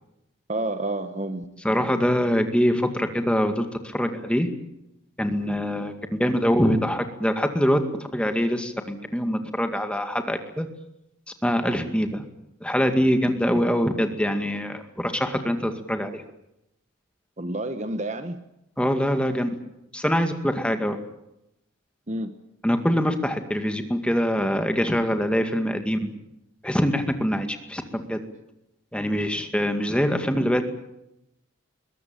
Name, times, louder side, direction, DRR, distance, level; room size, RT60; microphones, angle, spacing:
voice 1, 0.5-1.7 17.4-18.4 22.1-22.4, right 2 dB, 35° right, 10 dB, 1.2 m, -30 dB
voice 2, 1.6-4.5 5.2-5.9 6.2-7.8 8.1-10.7 11.4-12.2 12.6-16.2 18.8-19.5 19.9-21.0 22.6-26.1 26.6-28.2 28.9-30.7, equal, 5° left, 7 dB, 2.1 m, -24 dB
22.0 x 19.5 x 9.0 m, 0.84 s
head